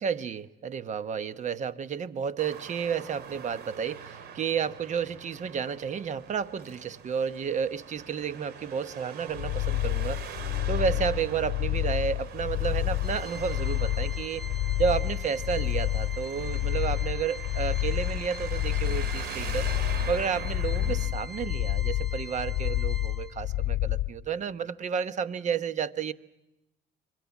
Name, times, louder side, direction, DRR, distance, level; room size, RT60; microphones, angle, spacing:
voice 1, 0.0-10.2 10.7-14.4 14.8-19.7 20.1-26.1, right 7 dB, 45° right, 14 dB, 1.1 m, -31 dB
Traffic noise roadway noise, 2.4-21.1, right 7 dB, 70° right, 2.9 m, -43 dB
sound 1, 9.3-24.1, left 16 dB, 80° left, 0.8 m, -29 dB
Organ, 13.0-23.6, right 3 dB, ahead, 1.8 m, -44 dB
27.0 x 23.5 x 7.2 m, 0.92 s
cardioid pair, 110°, 17 cm